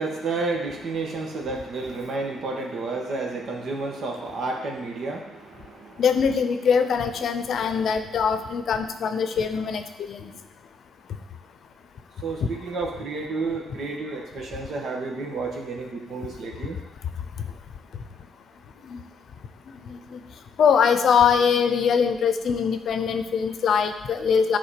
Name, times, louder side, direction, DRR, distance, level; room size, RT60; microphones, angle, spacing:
voice 1, 0.0-6.0 12.2-16.8, right 3 dB, 60° right, 1 dB, 1.5 m, -31 dB
voice 2, 6.0-10.3 18.9-19.0 19.9-20.2 20.6-24.6, left 6 dB, 60° left, 8 dB, 0.7 m, -22 dB
9.9 x 3.8 x 5.0 m, 0.95 s
cardioid pair, 90°, 0 cm